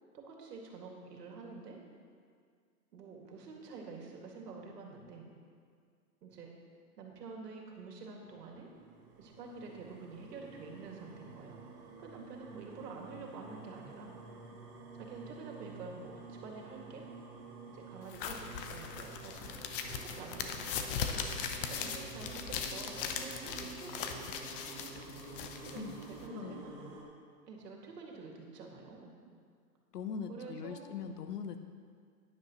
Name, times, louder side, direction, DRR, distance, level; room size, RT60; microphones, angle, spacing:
voice 1, 0.1-1.8 2.9-5.3 6.2-6.5 7.0-8.7 9.2-11.6 12.0-14.1 14.9-17.1 17.7-19.6 19.9-20.9 21.7-24.3 25.2-25.4 25.6-26.8 27.5-29.1 30.3-30.9, right 4 dB, 75° right, 0 dB, 2.3 m, -48 dB
sound 1, 8.3-27.0, right 4 dB, 40° right, 2.3 m, -50 dB
sound 2, 18.1-26.3, left 6 dB, 35° left, 0.7 m, -39 dB
voice 2, 26.3-26.6 29.9-31.6, left 6 dB, 75° left, 8 dB, 1.0 m, -41 dB
11.5 x 10.0 x 3.1 m, 2.1 s
hypercardioid pair, 135°, 48 cm